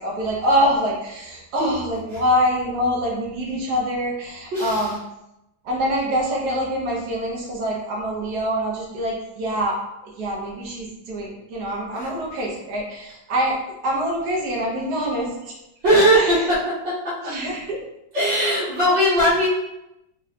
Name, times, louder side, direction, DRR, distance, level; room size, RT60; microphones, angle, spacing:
voice 1, 0.0-5.0 5.6-13.6 13.8-15.5 16.1-16.5 17.2-17.8, equal, 60° right, -2 dB, 1.5 m, -25 dB
voice 2, 4.5-4.9 11.9-12.1 15.8-17.1 18.1-19.5, equal, 75° right, -12 dB, 2.0 m, -19 dB
4.1 x 3.6 x 2.8 m, 0.89 s
omnidirectional pair, 2.0 m